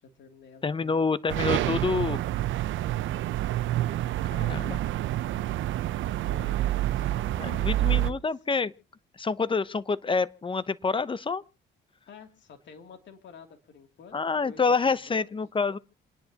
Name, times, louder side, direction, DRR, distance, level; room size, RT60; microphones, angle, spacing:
voice 1, 0.0-1.0 5.2-5.5 6.0-8.2 12.1-15.4, left 6 dB, 65° left, 2.7 m, -51 dB
voice 2, 0.6-2.2 4.3-4.8 7.4-8.7 9.1-11.4 14.1-15.8, left 4 dB, 25° left, 0.7 m, -27 dB
sound 1, 1.3-8.1, right 14 dB, 75° right, 0.6 m, -28 dB
28.0 x 10.5 x 2.9 m
cardioid pair, 90°, 20 cm